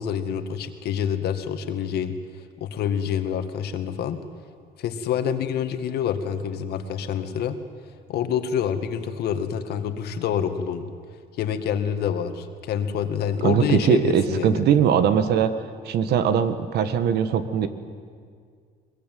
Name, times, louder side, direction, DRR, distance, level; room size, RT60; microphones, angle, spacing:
voice 1, 0.0-2.1 2.6-4.2 4.8-7.6 8.1-10.9 11.4-14.6, left 8 dB, 70° left, 8 dB, 2.1 m, -27 dB
voice 2, 13.4-15.5 15.8-17.7, right 8 dB, 75° right, 11 dB, 1.7 m, -21 dB
22.0 x 22.0 x 9.4 m, 2.1 s
cardioid pair, 110°, 17 cm